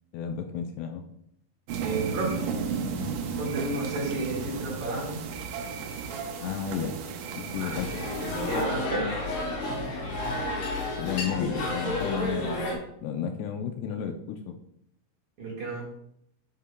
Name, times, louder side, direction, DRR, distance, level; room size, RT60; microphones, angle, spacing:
voice 1, 0.1-1.1 6.4-7.0 7.4-7.9 11.0-14.6, left 8 dB, 80° left, 5 dB, 2.5 m, -33 dB
sound 1, 1.7-8.7, right 5 dB, 90° right, 1.9 m, -34 dB
voice 2, 1.8-2.3 3.4-5.2 7.6-7.7 8.5-9.2 15.4-15.9, right 2 dB, 55° right, -5 dB, 2.5 m, -31 dB
sound 2, 7.7-12.7, left 2 dB, 65° left, 3.4 m, -31 dB
9.4 x 7.1 x 2.2 m, 0.74 s
omnidirectional pair, 5.0 m